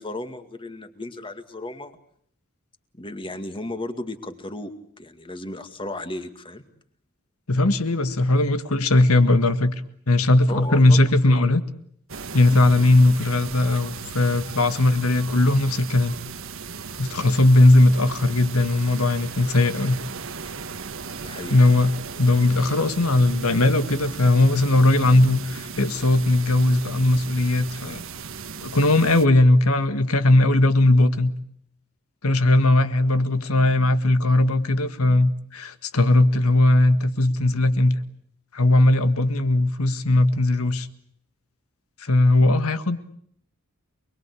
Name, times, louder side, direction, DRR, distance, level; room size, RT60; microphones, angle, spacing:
voice 1, 0.0-1.9 3.0-4.7 5.0-6.6 10.5-11.4 21.2-21.5, left 1 dB, 25° left, 8 dB, 2.2 m, -35 dB
voice 2, 7.5-9.7 10.1-11.6 12.3-16.1 17.0-20.0 21.5-21.9 22.2-28.0 28.6-31.3 32.2-38.0 38.5-40.9 42.0-43.0, left 2 dB, 85° left, 11 dB, 1.8 m, -18 dB
sound 1, 12.1-29.3, right 5 dB, 65° right, 1.5 m, -36 dB
28.5 x 21.5 x 8.5 m, 0.66 s
head